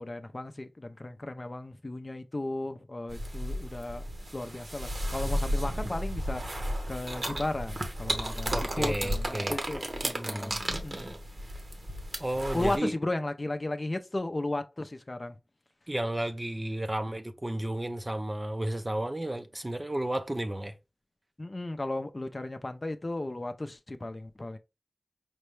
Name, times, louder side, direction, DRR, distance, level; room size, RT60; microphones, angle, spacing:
voice 1, 0.0-4.0 4.3-11.1 12.5-15.4 21.4-24.6, left 2 dB, 35° left, 0.5 m, -35 dB
sound 1, 3.1-12.8, equal, 55° right, 1.0 m, -33 dB
voice 2, 8.5-9.6 10.2-10.6 12.2-12.9 15.9-20.7, right 1 dB, 25° right, 0.5 m, -32 dB
5.2 x 2.2 x 3.1 m
wide cardioid pair, 80°, 0 cm